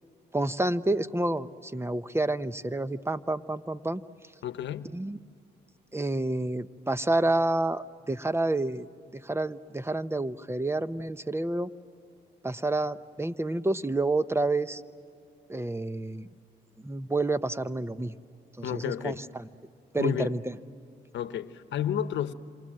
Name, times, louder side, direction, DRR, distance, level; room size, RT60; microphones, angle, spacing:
voice 1, 0.3-4.0 4.9-5.2 5.9-8.9 9.1-11.7 12.4-14.8 15.5-16.3 16.8-18.2 18.6-19.5 19.9-20.6, right 2 dB, 15° right, 14 dB, 0.9 m, -29 dB
voice 2, 4.4-4.9 18.6-19.2 20.0-20.3 21.1-22.3, left 10 dB, 75° left, 13 dB, 1.0 m, -31 dB
27.5 x 27.0 x 7.7 m, 2.5 s
supercardioid pair, 60°, 19 cm